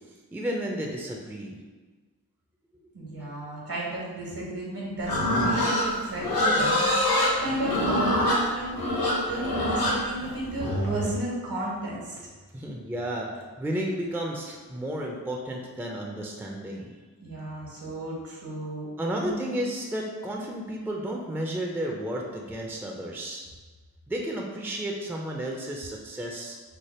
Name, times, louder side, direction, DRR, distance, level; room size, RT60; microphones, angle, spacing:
voice 1, 0.3-1.6 12.5-16.9 19.0-23.4 24.1-26.6, right 1 dB, 5° right, 0 dB, 0.5 m, -32 dB
voice 2, 2.9-12.2 17.2-19.5, right 1 dB, 65° right, -5 dB, 1.4 m, -33 dB
Livestock farm animals working animals, 5.0-11.1, left 1 dB, 70° left, 1.0 m, -25 dB
3.3 x 2.0 x 4.2 m, 1.4 s
cardioid pair, 45°, 38 cm